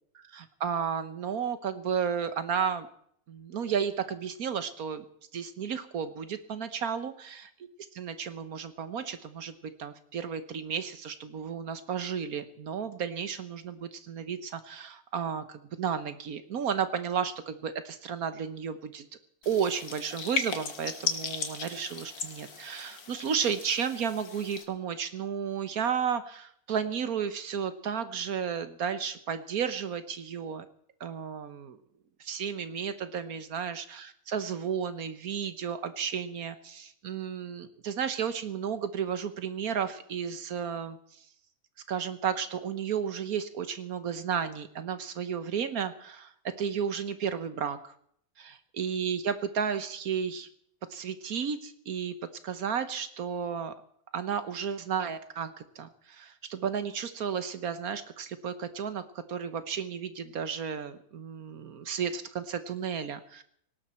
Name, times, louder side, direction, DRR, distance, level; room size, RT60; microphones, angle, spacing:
voice 1, 0.1-2.9 3.3-5.0 5.3-7.1 7.9-19.0 19.4-30.6 31.0-31.8 32.2-41.0 41.9-46.3 46.6-47.9 48.4-50.5 50.9-52.1 52.4-53.7 54.1-63.4, right 7 dB, 75° right, 11 dB, 1.5 m, -33 dB
sound 1, 19.4-24.6, left 5 dB, 85° left, 2.1 m, -36 dB
18.0 x 18.0 x 4.4 m, 0.66 s
omnidirectional pair, 1.6 m